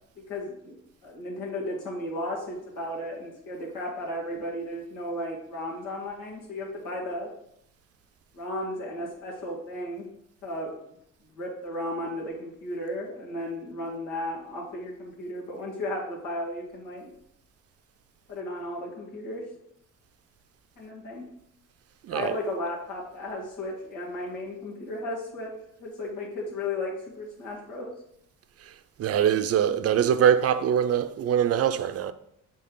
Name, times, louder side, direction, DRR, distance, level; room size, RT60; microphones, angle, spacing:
voice 1, 0.3-7.3 8.3-10.1 10.4-10.7 11.4-17.1 18.3-19.4 20.8-21.2 22.1-25.5 25.8-27.9, left 1 dB, 90° left, 1.9 m, -34 dB
voice 2, 29.0-32.1, right 9 dB, 55° right, 0.5 m, -23 dB
6.5 x 3.9 x 3.9 m
cardioid pair, 90°, 30 cm